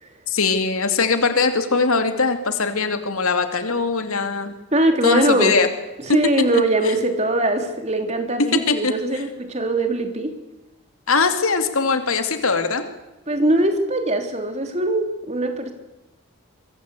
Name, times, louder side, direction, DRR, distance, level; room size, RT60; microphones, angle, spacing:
voice 1, 0.3-4.5 5.0-5.7 6.1-6.2 6.5-7.0 8.4-9.2 11.1-12.8, left 4 dB, 75° left, 7 dB, 2.6 m, -21 dB
voice 2, 4.7-5.6 6.0-10.4 13.3-15.7, right 2 dB, 30° right, 6 dB, 3.3 m, -21 dB
26.0 x 23.0 x 8.4 m, 1.0 s
head